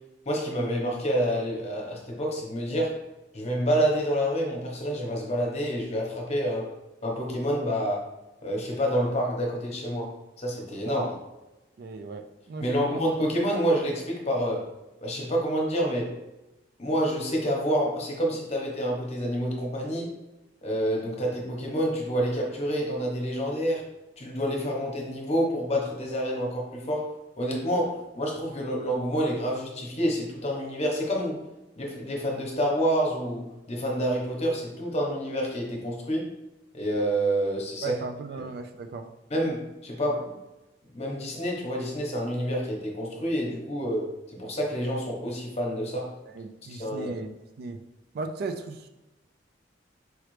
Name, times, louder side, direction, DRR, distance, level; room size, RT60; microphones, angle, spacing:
voice 1, 0.3-3.0 3.3-6.7 7.0-8.1 8.4-11.1 12.6-14.7 15.0-16.2 16.8-20.1 20.6-23.9 24.2-31.4 31.8-36.3 36.7-38.0 38.4-38.5 39.3-40.4 40.9-46.1 46.7-47.1, equal, 35° left, -1 dB, 1.0 m, -28 dB
voice 2, 11.8-13.1 37.8-39.1 46.3-47.8 48.1-48.8, right 4 dB, 55° right, 7 dB, 0.4 m, -36 dB
4.9 x 3.2 x 3.2 m, 1.0 s
head